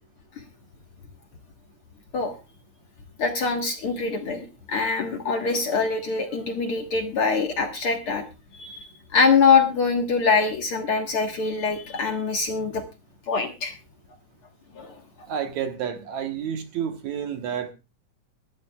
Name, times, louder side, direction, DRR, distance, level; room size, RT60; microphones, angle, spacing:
voice 1, 3.2-8.2 8.5-8.9 9.1-12.8 13.3-13.7 14.8-14.9, left 5 dB, 50° left, 4 dB, 1.9 m, -23 dB
voice 2, 15.3-17.7, right 8 dB, 65° right, 6 dB, 2.4 m, -30 dB
23.5 x 12.0 x 2.3 m, 0.29 s
omnidirectional pair, 3.8 m